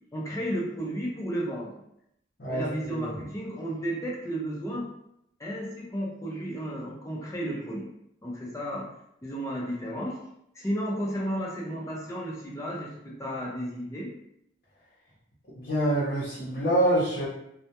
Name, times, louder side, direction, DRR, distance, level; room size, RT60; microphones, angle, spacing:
voice 1, 0.1-1.8 2.5-4.9 5.4-7.9 8.2-8.9 9.2-10.2 10.5-14.1, equal, 15° left, -3 dB, 0.4 m, -33 dB
voice 2, 2.4-3.3 15.5-17.3, right 1 dB, 60° left, -9 dB, 0.6 m, -26 dB
2.1 x 2.1 x 2.8 m, 0.78 s
head